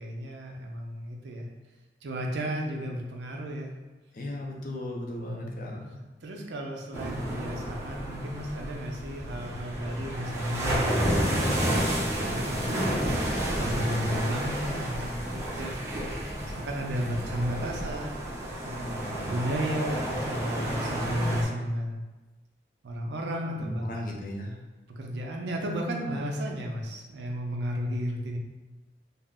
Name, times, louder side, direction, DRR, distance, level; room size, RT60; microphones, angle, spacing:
voice 1, 0.0-1.5 2.0-3.7 5.2-5.7 6.2-13.3 13.6-16.0 16.4-18.9 19.3-22.0 22.8-23.9 24.9-28.4, equal, 80° right, 1 dB, 0.4 m, -33 dB
voice 2, 4.1-5.9 18.6-19.5 23.6-24.5, left 1 dB, 50° left, -1 dB, 0.4 m, -37 dB
sound 1, 6.9-21.4, right 1 dB, 15° right, 0.5 m, -31 dB
2.3 x 2.0 x 3.5 m, 1.2 s
head